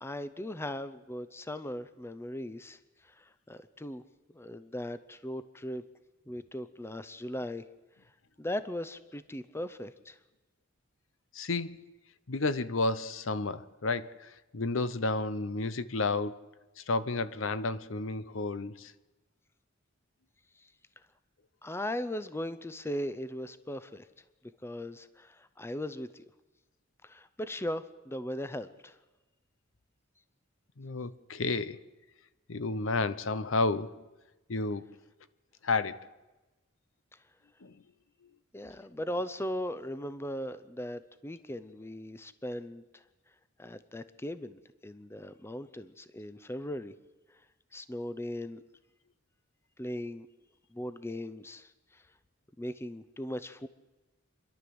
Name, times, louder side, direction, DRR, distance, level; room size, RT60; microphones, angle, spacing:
voice 1, 0.0-2.8 3.0-4.0 4.3-5.8 6.3-7.6 8.4-10.2 21.6-24.1 24.6-26.2 27.0-29.0 38.5-43.0 43.6-46.9 47.7-48.6 49.8-50.3 50.7-52.0 52.6-53.7, left 1 dB, 10° left, 0.6 m, -38 dB
voice 2, 11.3-11.8 12.3-16.4 16.8-18.9 30.8-31.8 32.5-34.0 34.5-34.8 35.6-36.1 37.6-37.7, left 3 dB, 70° left, 0.8 m, -31 dB
28.5 x 11.5 x 7.8 m
head